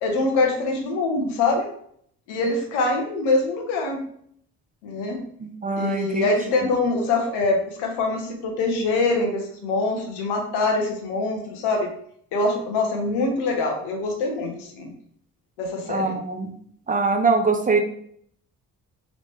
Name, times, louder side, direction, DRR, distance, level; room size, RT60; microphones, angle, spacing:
voice 1, 0.0-1.7 2.3-4.0 4.8-5.2 5.8-11.9 12.3-14.9 15.6-16.2, left 3 dB, 75° left, 2 dB, 1.0 m, -24 dB
voice 2, 5.4-6.3 15.9-16.5 16.9-17.8, right 4 dB, 20° right, 5 dB, 0.8 m, -23 dB
4.0 x 3.0 x 3.5 m, 0.65 s
hypercardioid pair, 45°, 40 cm